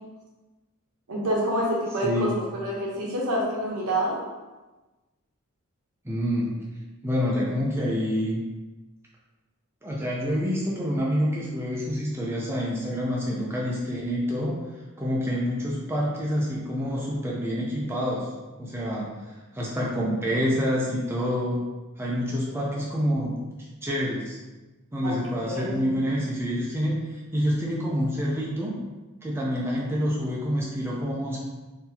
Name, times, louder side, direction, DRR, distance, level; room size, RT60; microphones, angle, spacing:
voice 1, 1.1-4.2 25.0-25.2 25.4-26.0, equal, 75° right, -3 dB, 1.0 m, -27 dB
voice 2, 2.0-2.3 6.0-6.5 7.0-8.4 9.8-14.6 15.0-18.3 18.6-19.1 19.5-21.6 22.0-23.3 23.8-24.4 24.9-27.0 27.3-28.7 29.2-31.4, equal, 10° right, -5 dB, 0.5 m, -27 dB
3.9 x 2.8 x 2.8 m, 1.2 s
head